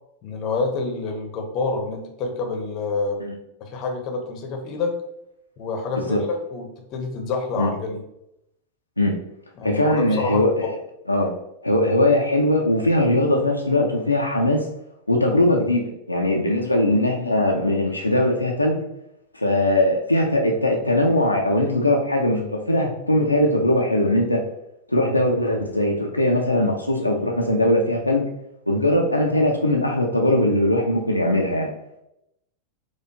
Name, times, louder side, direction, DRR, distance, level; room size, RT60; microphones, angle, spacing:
voice 1, 0.2-3.2 3.6-4.9 5.6-8.0 9.6-10.4, left 3 dB, 35° left, 3 dB, 0.7 m, -27 dB
voice 2, 9.6-10.5 11.1-11.3 11.6-14.7 15.1-18.8 19.3-24.4 24.9-28.2 28.7-31.7, left 1 dB, 85° left, 0 dB, 0.4 m, -20 dB
4.4 x 2.4 x 2.7 m, 0.83 s
figure-of-eight pair, 90°, 0 cm